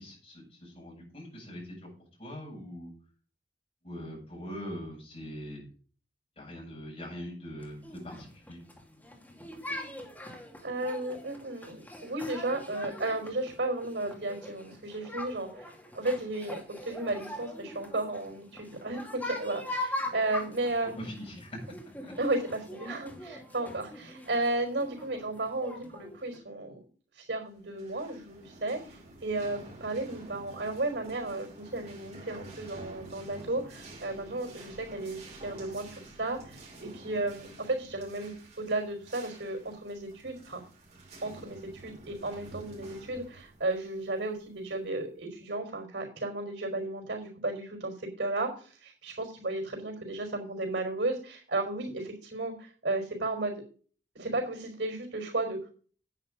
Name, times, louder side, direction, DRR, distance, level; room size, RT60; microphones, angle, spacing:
voice 1, 0.0-1.9 2.2-2.9 3.8-5.6 6.4-8.6 21.0-21.6 22.0-22.1, equal, 35° left, -3 dB, 7.5 m, -42 dB
sound 1, 7.6-26.4, left 1 dB, 10° left, 2.5 m, -42 dB
voice 2, 10.6-20.9 22.2-26.9 27.1-40.6 41.2-53.6 54.1-55.6, right 2 dB, 85° right, 0 dB, 4.3 m, -34 dB
sound 2, 27.6-45.0, right 1 dB, 40° right, 4.7 m, -50 dB
10.0 x 9.1 x 5.2 m, 0.42 s
head